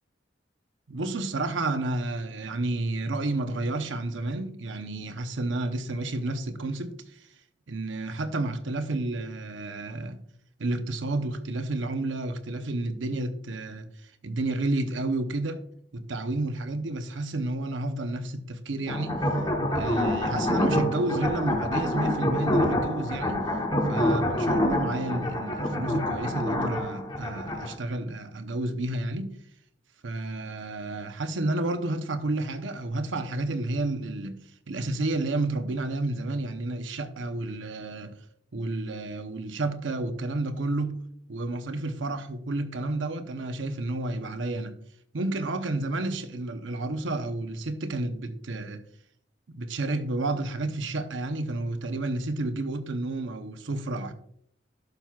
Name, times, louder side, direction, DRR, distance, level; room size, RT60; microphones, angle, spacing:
voice 1, 0.9-7.0 7.7-10.2 10.6-13.9 14.2-15.6 15.9-19.2 19.7-23.5 23.9-29.4 30.0-34.4 34.7-38.1 38.5-44.7 45.1-48.8 49.5-54.1, right 2 dB, 85° right, 0.7 m, -31 dB
sound 1, 18.9-27.7, left 1 dB, 25° left, 0.9 m, -27 dB
12.0 x 5.8 x 2.3 m
head